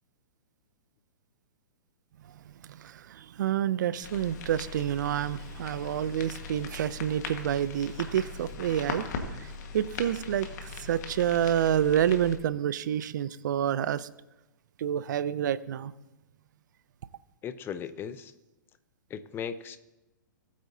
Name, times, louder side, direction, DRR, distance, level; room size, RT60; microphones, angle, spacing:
voice 1, 2.5-14.1 14.8-15.9, right 10 dB, 65° right, 18 dB, 0.5 m, -28 dB
sound 1, 4.0-12.4, left 5 dB, 55° left, 1.6 m, -40 dB
voice 2, 17.4-18.3 19.1-19.8, left 7 dB, 20° left, 13 dB, 0.6 m, -37 dB
19.0 x 8.5 x 2.8 m, 1.0 s
hypercardioid pair, 125°, 11 cm